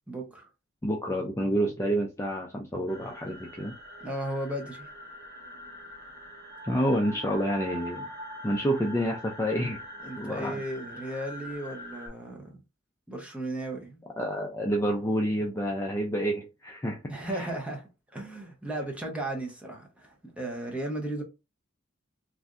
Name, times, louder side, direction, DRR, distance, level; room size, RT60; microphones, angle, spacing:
voice 1, 0.1-0.5 4.0-4.9 10.0-12.6 13.1-14.0 17.1-21.2, right 1 dB, 5° right, 0.8 m, -35 dB
voice 2, 0.8-3.7 6.7-8.0 8.4-9.8 10.2-10.6 14.2-17.0 17.3-17.4, equal, 15° left, 0.3 m, -28 dB
sound 1, 2.9-12.1, equal, 45° right, 1.2 m, -43 dB
3.3 x 2.5 x 2.4 m
head